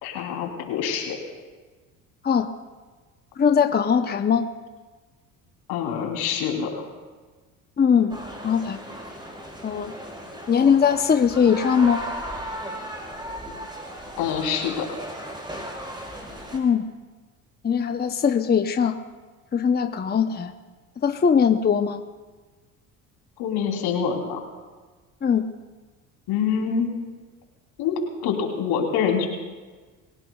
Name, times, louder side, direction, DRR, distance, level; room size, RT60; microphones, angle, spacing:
voice 1, 0.0-1.2 5.7-6.9 14.2-15.0 23.4-24.4 26.3-26.9 27.8-29.3, left 7 dB, 75° left, 1 dB, 3.4 m, -26 dB
voice 2, 3.4-4.5 7.8-8.1 8.4-8.8 9.6-9.9 10.5-12.0 16.5-16.8 17.6-19.0 19.5-20.5 21.0-22.0 25.2-25.5, left 7 dB, 25° left, 7 dB, 0.8 m, -20 dB
sound 1, 8.1-16.6, equal, 10° right, 4.2 m, -36 dB
29.0 x 17.0 x 2.4 m, 1.4 s
supercardioid pair, 80°, 39 cm